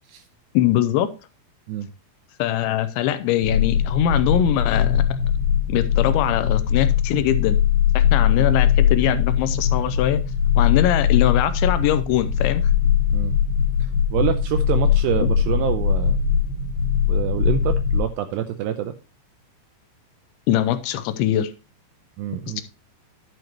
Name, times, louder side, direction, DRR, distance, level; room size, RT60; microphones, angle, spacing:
voice 1, 0.5-1.1 2.4-5.0 5.7-7.6 7.9-10.2 10.6-12.7 20.5-21.5 22.6-22.7, left 11 dB, 85° left, 12 dB, 2.8 m, -22 dB
sound 1, 3.4-18.0, left 8 dB, 70° left, 2.7 m, -20 dB
voice 2, 14.1-16.2 17.1-19.0 22.2-22.6, right 11 dB, 85° right, 9 dB, 2.5 m, -26 dB
11.5 x 7.8 x 3.0 m, 0.30 s
omnidirectional pair, 5.5 m